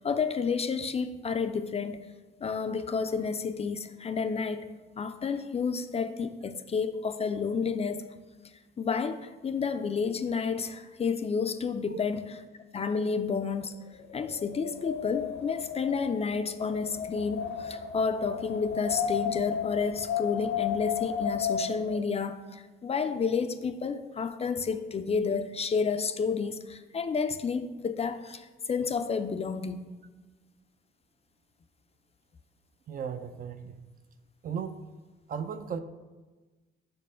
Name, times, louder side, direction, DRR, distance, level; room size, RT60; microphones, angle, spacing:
voice 1, 0.0-2.0 2.4-4.7 5.0-8.1 8.8-12.4 12.7-13.7 14.1-29.9, left 5 dB, 30° left, 9 dB, 0.4 m, -30 dB
Wind, 14.0-22.0, left 7 dB, 65° left, 0.7 m, -33 dB
voice 2, 32.9-33.8 34.4-34.8 35.3-35.8, right 7 dB, 45° right, 9 dB, 0.5 m, -36 dB
5.3 x 4.3 x 5.5 m, 1.3 s
cardioid pair, 90°, 20 cm